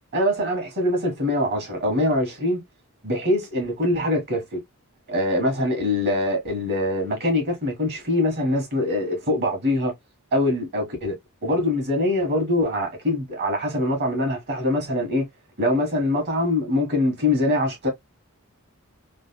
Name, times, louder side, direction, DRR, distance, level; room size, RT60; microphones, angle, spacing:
voice 1, 0.1-2.6 3.0-4.6 5.1-9.9 10.3-11.1 11.4-15.3 15.6-17.9, left 1 dB, 50° right, 1.4 m, -23 dB
3.4 x 2.2 x 2.2 m
head